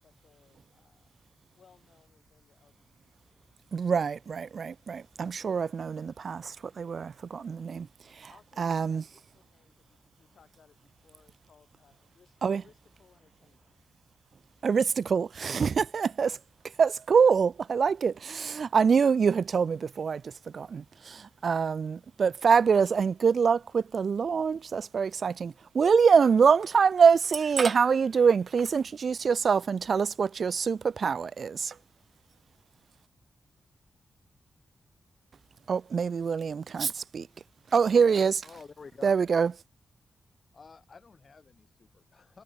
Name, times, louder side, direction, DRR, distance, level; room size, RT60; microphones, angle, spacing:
voice 1, 0.0-1.1 1.5-3.6 8.3-13.7 14.5-14.6 15.4-15.5, left 6 dB, 70° left, 7.2 m, -64 dB
voice 2, 3.7-7.9 8.2-8.3 8.6-9.0 12.4-12.6 14.6-16.4 16.8-31.7 35.7-37.3 37.7-38.4 39.0-39.5, right 6 dB, 65° right, 0.3 m, -25 dB
voice 3, 38.4-39.2 40.5-42.4, left 4 dB, 55° left, 4.5 m, -50 dB
cardioid pair, 55°, 0 cm